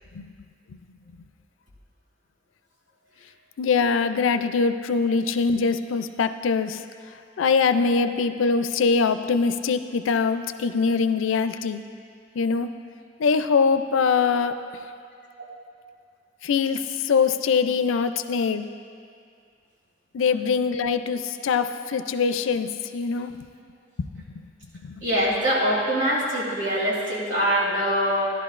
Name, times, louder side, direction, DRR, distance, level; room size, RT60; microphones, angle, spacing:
voice 1, 3.6-6.8 7.4-11.8 12.3-12.7 13.2-14.6 16.4-18.7 20.1-23.4 24.0-24.2 24.7-25.0, left 5 dB, 75° left, 10 dB, 0.4 m, -23 dB
voice 2, 25.0-28.3, equal, 70° right, -5 dB, 2.7 m, -23 dB
14.0 x 11.0 x 2.5 m, 2.3 s
head